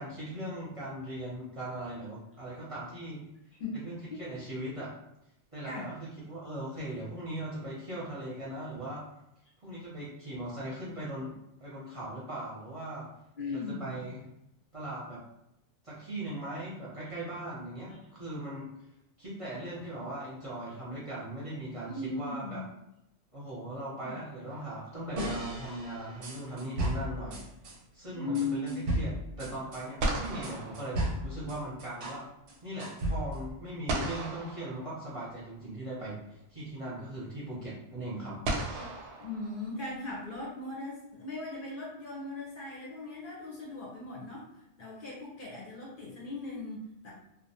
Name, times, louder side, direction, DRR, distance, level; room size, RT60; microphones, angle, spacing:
voice 1, 0.0-3.2 3.7-4.9 5.5-9.0 9.6-11.3 11.6-13.1 13.5-14.2 14.7-15.2 15.8-18.7 19.2-22.6 23.3-27.4 27.9-32.3 32.6-38.4, right 1 dB, 35° right, -8 dB, 0.6 m, -39 dB
voice 2, 3.5-3.8 4.1-4.2 5.6-5.9 13.4-14.1 21.8-22.6 24.0-24.2 28.1-29.0 38.7-38.9 39.2-44.5 44.8-47.1, left 3 dB, 55° left, -4 dB, 0.7 m, -38 dB
sound 1, 24.5-25.4 29.5-29.6 30.0-31.7 33.9-35.5 36.8-36.9 38.4-40.1, right 2 dB, 70° right, 0.8 m, -36 dB
sound 2, 25.2-27.8 28.3-32.2 32.5-33.5, right 1 dB, 90° right, 1.0 m, -35 dB
2.3 x 2.1 x 2.7 m, 0.85 s
omnidirectional pair, 1.2 m